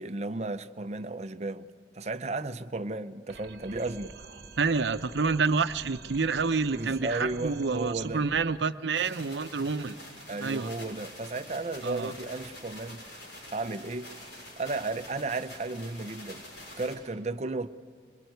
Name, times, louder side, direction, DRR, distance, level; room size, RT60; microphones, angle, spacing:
voice 1, 0.0-1.7 1.9-4.1 6.7-8.2 10.3-13.0 13.5-14.1 14.6-16.5 16.8-17.7, right 2 dB, 35° right, 0.6 m, -34 dB
sound 1, 3.3-8.6, right 4 dB, 55° right, 1.2 m, -47 dB
voice 2, 4.6-10.0 10.4-10.7 11.8-12.1, right 4 dB, 80° right, 0.7 m, -28 dB
sound 2, 8.9-16.9, left 1 dB, 75° left, 6.8 m, -46 dB
23.5 x 21.5 x 9.4 m
head